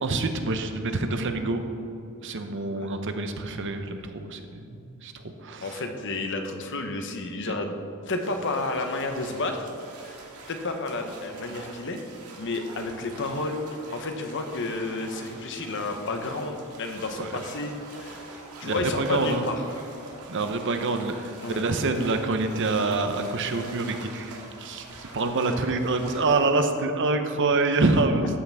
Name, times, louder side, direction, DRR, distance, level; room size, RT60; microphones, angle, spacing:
voice 1, 0.0-1.6 2.2-5.8 7.5-7.6 17.2-17.3 18.6-19.4 20.3-28.4, right 3 dB, 55° right, 7 dB, 0.8 m, -26 dB
voice 2, 5.6-7.7 8.0-9.7 10.0-10.2 10.5-12.0 12.4-13.6 13.9-18.2 18.6-19.6 21.4-21.6, left 2 dB, 55° left, 5 dB, 0.9 m, -31 dB
sound 1, 8.2-26.7, right 2 dB, 85° right, 1.7 m, -45 dB
12.5 x 8.3 x 3.5 m, 2.6 s
head